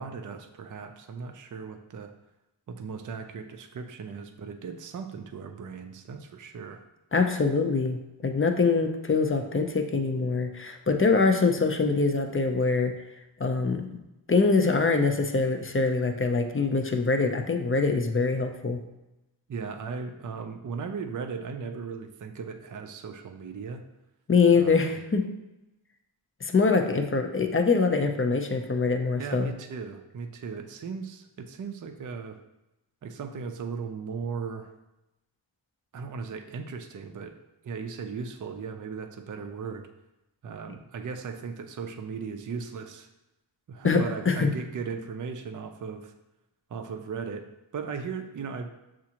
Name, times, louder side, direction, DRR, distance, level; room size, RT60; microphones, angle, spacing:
voice 1, 0.0-2.1 2.7-6.8 19.5-23.8 24.6-25.0 29.2-32.4 33.0-34.7 35.9-39.9 40.4-43.1 43.7-46.1 46.7-48.7, right 5 dB, 45° right, 6 dB, 0.4 m, -37 dB
voice 2, 7.1-12.9 13.4-13.8 14.3-18.8 24.3-25.2 26.4-29.5 43.8-44.5, left 4 dB, 30° left, 5 dB, 0.5 m, -24 dB
7.0 x 2.5 x 2.8 m, 0.95 s
wide cardioid pair, 55°, 47 cm